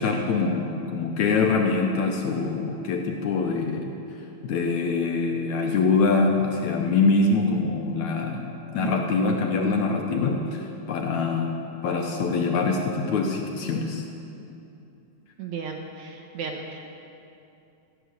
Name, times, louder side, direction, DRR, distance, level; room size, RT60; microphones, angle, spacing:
voice 1, 0.0-4.0 4.4-11.6 11.8-14.0, left 4 dB, 75° left, 2 dB, 1.8 m, -24 dB
voice 2, 15.4-16.8, right 5 dB, 75° right, 2 dB, 1.8 m, -35 dB
15.5 x 8.2 x 9.4 m, 2.7 s
omnidirectional pair, 4.4 m